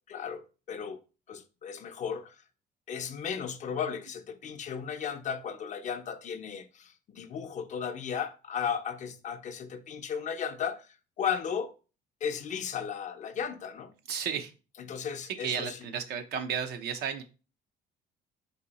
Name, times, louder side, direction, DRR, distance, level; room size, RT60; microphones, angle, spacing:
voice 1, 0.1-1.0 1.3-2.4 2.9-11.7 12.2-13.9 14.8-15.8, left 7 dB, 45° left, 0.5 m, -35 dB
voice 2, 14.1-14.5 15.4-17.2, right 7 dB, 75° right, 0.7 m, -33 dB
4.2 x 2.7 x 3.9 m
cardioid pair, 110°, 17 cm